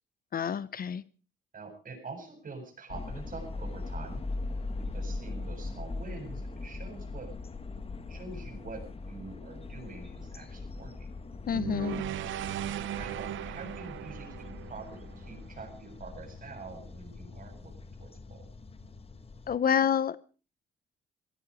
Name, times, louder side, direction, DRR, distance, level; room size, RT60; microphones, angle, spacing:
voice 1, 0.3-1.0 11.5-12.0 19.5-20.2, left 8 dB, 45° left, 18 dB, 0.8 m, -28 dB
voice 2, 1.5-4.2 4.8-7.3 8.1-11.1 12.9-18.5, right 3 dB, 45° right, 6 dB, 7.7 m, -45 dB
sound 1, 2.9-19.6, left 3 dB, 30° left, 1.5 m, -41 dB
sound 2, 11.5-15.8, right 12 dB, 80° right, 0.9 m, -37 dB
16.5 x 15.5 x 5.0 m, 0.37 s
cardioid pair, 90°, 20 cm